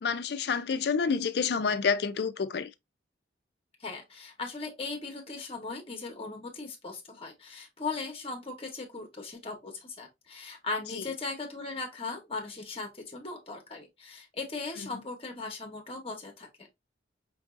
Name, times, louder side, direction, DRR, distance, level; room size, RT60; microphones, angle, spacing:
voice 1, 0.0-2.7 10.9-11.0, left 5 dB, 60° left, 0.4 m, -28 dB
voice 2, 3.8-16.7, left 3 dB, 30° left, 1.0 m, -38 dB
5.3 x 2.6 x 2.4 m
head